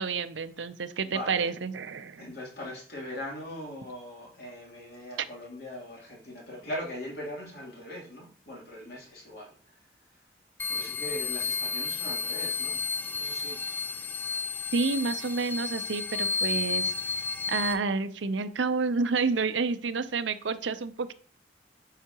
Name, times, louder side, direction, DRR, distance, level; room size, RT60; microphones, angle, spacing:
voice 1, 0.0-2.2 14.7-16.9 17.5-21.1, right 4 dB, 85° right, 11 dB, 0.6 m, -29 dB
voice 2, 1.0-1.5 2.2-9.8 10.7-12.8 13.2-13.6, left 1 dB, 55° left, -3 dB, 3.1 m, -40 dB
sound 1, 10.6-17.7, left 4 dB, 10° left, 0.3 m, -32 dB
8.2 x 5.7 x 2.9 m, 0.43 s
head